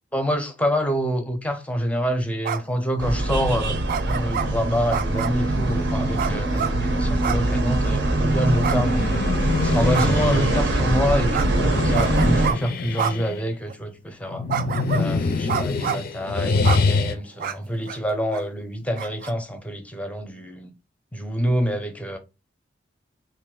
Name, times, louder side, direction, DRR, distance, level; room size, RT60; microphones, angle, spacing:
voice 1, 0.1-3.8 4.0-9.2 9.6-14.5 14.9-20.7 21.1-22.2, equal, 10° left, 0.6 m, -26 dB
sound 1, 2.4-2.8 3.9-4.5 4.9-5.4 6.2-6.7 7.2-7.5 7.8-7.9 8.6-9.3 9.9-10.3 11.3-11.5 11.9-12.6 13.0-13.1 13.7-13.8 14.5-15.1 15.5-16.1 16.6-16.8 17.4-17.5 17.9-18.0 18.3-18.4 19.0-19.3, right 7 dB, 50° right, 0.3 m, -27 dB
sound 2, 3.0-12.5, right 1 dB, 70° right, 0.7 m, -23 dB
sound 3, 8.3-10.6 11.5-13.5 14.3-17.1, left 4 dB, 55° left, 0.4 m, -25 dB
3.1 x 2.6 x 3.7 m
head